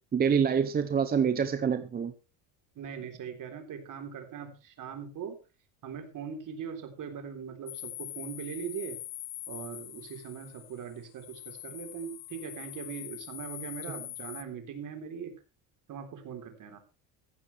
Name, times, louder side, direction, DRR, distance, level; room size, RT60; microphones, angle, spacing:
voice 1, 0.1-2.1, right 7 dB, 20° right, 0.7 m, -26 dB
voice 2, 2.8-5.4 5.8-9.0 9.5-15.3 15.9-16.8, right 7 dB, 40° right, 3.8 m, -40 dB
sound 1, 7.7-14.4, left 16 dB, 55° left, 1.5 m, -43 dB
15.5 x 15.0 x 3.4 m
cardioid pair, 175°, 46 cm